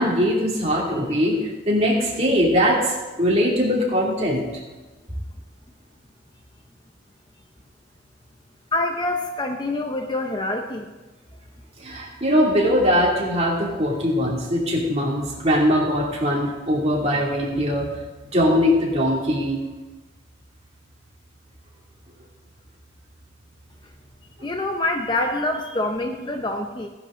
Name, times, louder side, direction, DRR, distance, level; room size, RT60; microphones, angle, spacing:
voice 1, 0.0-1.4 1.7-4.4 11.8-17.9 18.3-19.6, equal, 30° right, -3 dB, 2.6 m, -21 dB
voice 2, 8.7-10.9 24.4-26.9, left 2 dB, 25° left, 5 dB, 0.6 m, -26 dB
15.5 x 10.0 x 3.8 m, 1.2 s
head